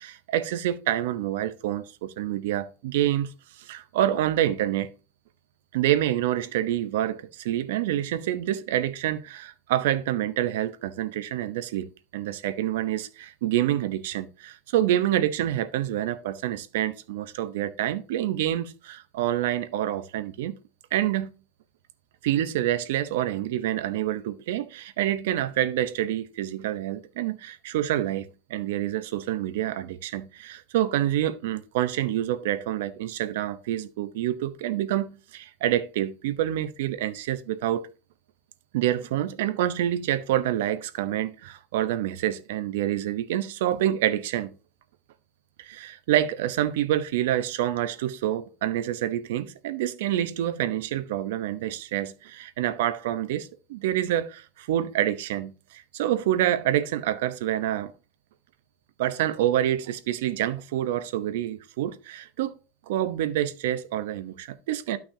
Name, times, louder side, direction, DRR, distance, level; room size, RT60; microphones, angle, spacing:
voice 1, 0.0-3.3 3.6-4.9 5.7-20.6 20.9-21.3 22.2-37.9 38.7-44.5 45.6-57.9 59.0-62.6 62.9-65.0, right 12 dB, 80° right, 0.8 m, -27 dB
12.0 x 5.9 x 2.8 m
supercardioid pair, 155°, 0 cm